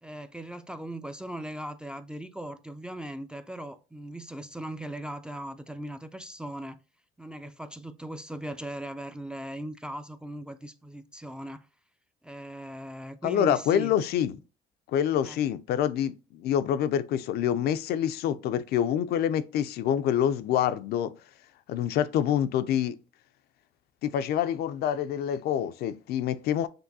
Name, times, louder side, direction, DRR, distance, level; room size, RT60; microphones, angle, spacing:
voice 1, 0.0-6.8 7.2-11.7 12.2-13.9 15.2-15.4, right 1 dB, 5° right, 0.3 m, -39 dB
voice 2, 13.2-14.4 14.9-21.1 21.7-23.0 24.0-26.7, left 10 dB, 70° left, 0.4 m, -26 dB
6.1 x 2.6 x 2.6 m
cardioid pair, 110°, 17 cm